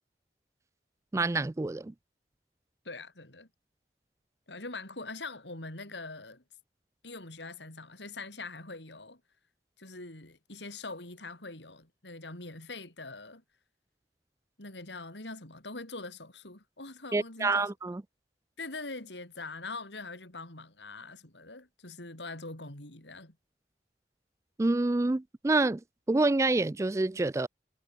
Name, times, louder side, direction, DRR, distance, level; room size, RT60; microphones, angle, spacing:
voice 1, 1.1-1.9 17.1-18.0 24.6-25.8 26.1-27.5, right 2 dB, 15° right, 0.3 m, -27 dB
voice 2, 2.8-3.5 4.5-6.4 7.0-9.2 9.8-13.4 14.6-17.7 18.6-23.4, left 3 dB, 90° left, 5.9 m, -43 dB
head